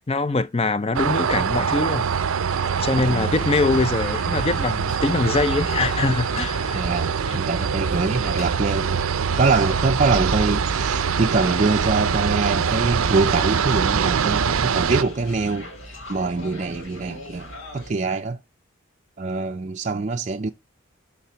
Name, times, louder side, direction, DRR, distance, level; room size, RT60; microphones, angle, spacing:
voice 1, 0.1-2.3 2.8-6.8 7.3-7.4, left 3 dB, 30° left, 0.5 m, -23 dB
sound 1, 0.9-15.0, right 6 dB, 90° right, 0.5 m, -24 dB
sound 2, 2.5-17.9, left 1 dB, 80° left, 5.0 m, -40 dB
voice 2, 6.7-9.0 9.3-15.7 16.1-18.4 19.2-20.5, right 3 dB, 35° right, 0.4 m, -24 dB
7.3 x 5.8 x 6.8 m
head